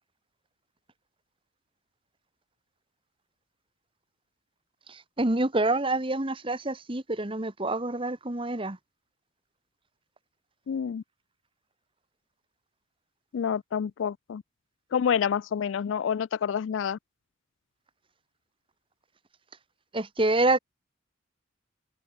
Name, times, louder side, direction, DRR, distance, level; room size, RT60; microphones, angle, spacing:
voice 1, 4.9-8.8 19.9-20.6, right 2 dB, 25° right, 1.4 m, -27 dB
voice 2, 10.7-11.0 13.3-14.4 14.9-17.0, left 7 dB, 75° left, 0.3 m, -28 dB
open air
head